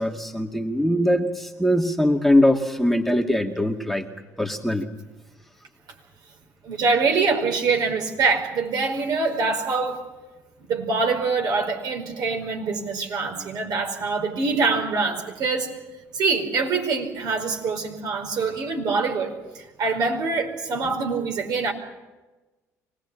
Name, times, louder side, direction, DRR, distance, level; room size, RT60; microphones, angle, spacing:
voice 1, 0.0-4.1 4.4-4.9, left 1 dB, ahead, 2 dB, 2.3 m, -21 dB
voice 2, 6.6-10.0 10.7-15.7 16.1-21.7, right 4 dB, 60° right, 2 dB, 5.0 m, -24 dB
25.0 x 19.0 x 8.7 m, 1.2 s
hypercardioid pair, 65°, 8 cm